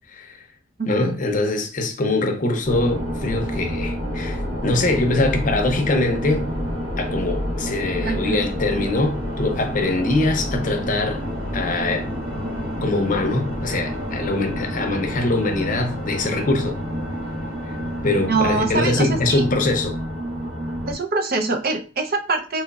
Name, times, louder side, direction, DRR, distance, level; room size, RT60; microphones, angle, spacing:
voice 1, 0.1-0.4 0.9-6.5 7.0-11.2 11.5-12.1 12.8-16.8 17.6-17.8 18.0-20.0, left 2 dB, 45° left, 0.6 m, -23 dB
voice 2, 0.8-1.2 8.0-8.4 18.3-19.4 20.9-22.6, right 3 dB, 50° right, 0.5 m, -24 dB
sound 1, 2.6-20.9, equal, 80° right, 1.8 m, -28 dB
3.9 x 2.9 x 2.3 m
head